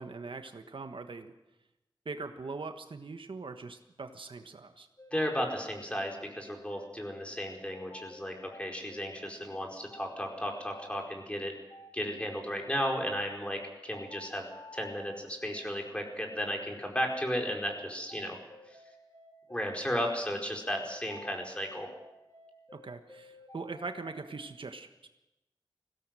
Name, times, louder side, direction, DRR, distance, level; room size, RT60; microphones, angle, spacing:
voice 1, 0.0-1.3 2.0-4.9 22.8-25.1, right 4 dB, 90° right, 7 dB, 1.4 m, -41 dB
sound 1, 5.0-24.4, left 1 dB, 40° left, 3.3 m, -52 dB
voice 2, 5.1-11.5 11.9-14.5 14.7-18.4 19.5-21.9, equal, 15° left, 1 dB, 4.8 m, -34 dB
20.0 x 17.0 x 7.7 m, 0.98 s
wide cardioid pair, 65°, 8 cm